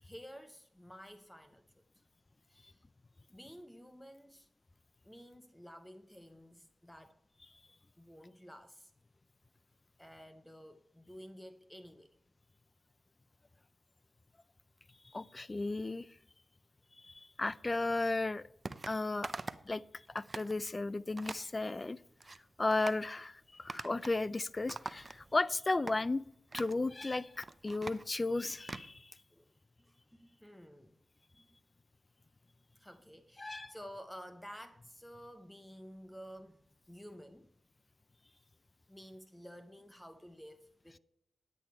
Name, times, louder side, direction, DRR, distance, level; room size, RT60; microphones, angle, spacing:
voice 1, 0.0-1.8 2.5-2.8 3.3-4.5 5.0-7.2 8.0-8.9 10.0-12.1 23.5-23.6 29.3-29.5 29.8-31.0 31.4-31.5 32.8-36.6 36.9-37.5 38.9-41.0, equal, 10° left, 0.9 m, -52 dB
voice 2, 15.1-16.1 17.0-18.4 18.8-19.3 19.7-19.8 20.1-22.0 22.6-26.2 26.5-29.1 33.4-33.7, left 2 dB, 30° left, 0.4 m, -34 dB
sound 1, 18.6-18.9 19.2-19.7 20.1-20.5 21.2-21.5 22.0-22.4 22.7-23.0 23.7-24.2 24.5-25.4 25.9-26.0 26.5-26.8 27.3-28.9, right 3 dB, 35° right, 0.5 m, -44 dB
10.0 x 8.5 x 4.4 m
cardioid pair, 60°, 0 cm